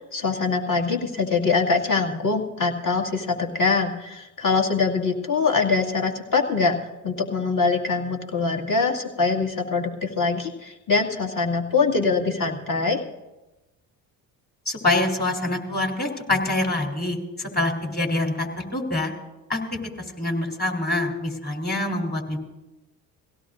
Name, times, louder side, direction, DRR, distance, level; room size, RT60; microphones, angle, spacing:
voice 1, 0.0-6.8 7.0-13.0, left 4 dB, 45° left, 1 dB, 2.4 m, -23 dB
voice 2, 14.7-19.1 19.5-19.6 20.2-22.4, left 2 dB, 20° left, 2 dB, 3.6 m, -25 dB
23.0 x 16.5 x 2.6 m, 1.0 s
hypercardioid pair, 55°, 45 cm